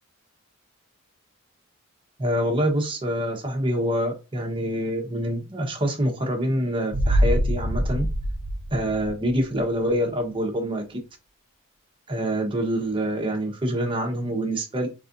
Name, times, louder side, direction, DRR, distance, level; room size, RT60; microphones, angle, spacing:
voice 1, 2.2-8.1 8.7-11.0 12.1-14.9, equal, 25° right, 0.9 m, -26 dB
sound 1, 6.9-9.6 9.9-10.0, equal, 55° right, 0.9 m, -24 dB
4.1 x 3.4 x 2.5 m
head